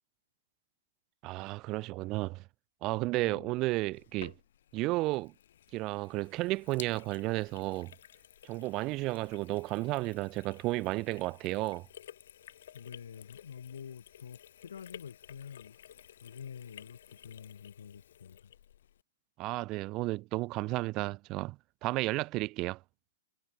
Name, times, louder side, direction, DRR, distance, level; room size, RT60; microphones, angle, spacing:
voice 1, 1.2-2.4 2.8-4.3 4.7-5.3 5.7-7.9 8.4-11.9 19.4-22.8, right 20 dB, 20° right, 0.5 m, -33 dB
Sink (filling or washing), 3.9-19.0, left 11 dB, 55° left, 1.6 m, -54 dB
voice 2, 12.7-15.8 16.2-18.5, left 7 dB, 85° left, 1.1 m, -47 dB
hypercardioid pair, 170°, 0 cm